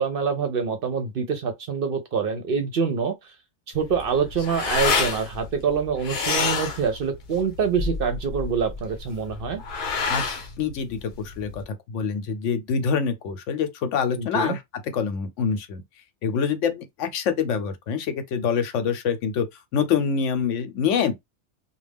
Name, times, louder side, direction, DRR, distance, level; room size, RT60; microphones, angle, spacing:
voice 1, 0.0-3.3 3.7-9.6 14.2-14.6, right 6 dB, 60° right, 0.7 m, -25 dB
sound 1, 3.7-11.6, left 4 dB, 55° left, 0.7 m, -28 dB
voice 2, 10.6-15.8 16.2-19.5 19.7-21.2, left 6 dB, 80° left, 1.0 m, -25 dB
2.3 x 2.1 x 3.3 m
omnidirectional pair, 1.2 m